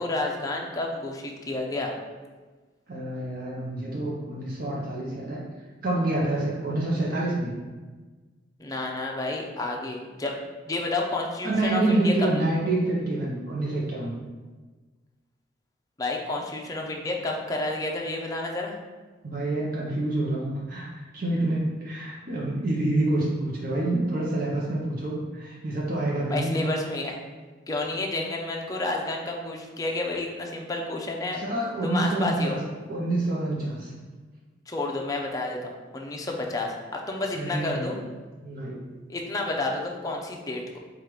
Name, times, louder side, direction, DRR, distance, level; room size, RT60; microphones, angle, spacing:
voice 1, 0.0-1.9 8.6-10.4 10.6-12.3 16.0-18.8 26.3-27.2 27.7-31.4 31.8-32.6 34.7-38.0 39.1-40.8, left 2 dB, 20° left, 0 dB, 0.5 m, -30 dB
voice 2, 2.9-5.4 5.8-7.5 11.4-14.1 19.2-20.9 21.1-26.6 31.3-32.6 32.9-33.9 37.4-38.0 38.4-38.9, right 2 dB, 50° right, -4 dB, 0.7 m, -27 dB
4.6 x 2.4 x 4.8 m, 1.3 s
head